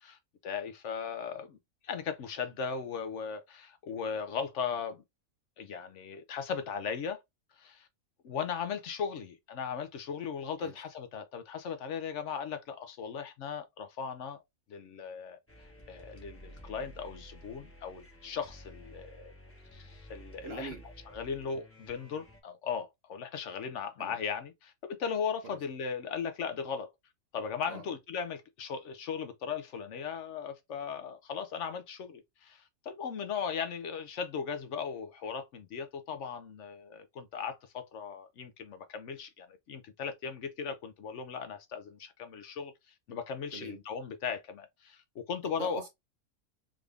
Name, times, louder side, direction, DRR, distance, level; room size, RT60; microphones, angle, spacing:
voice 1, 0.0-1.6 1.8-5.0 5.6-7.2 7.6-7.9 8.2-14.4 14.7-15.4 15.9-19.3 19.7-20.7 21.1-26.9 27.3-45.8, left 6 dB, 65° left, 0.8 m, -37 dB
sound 1, 15.5-22.4, equal, 10° left, 0.7 m, -52 dB
voice 2, 20.4-20.9 24.0-24.1 25.4-25.6 27.7-27.9 43.5-43.8 45.6-45.9, right 4 dB, 60° right, 0.8 m, -43 dB
3.7 x 2.4 x 3.3 m
omnidirectional pair, 1.5 m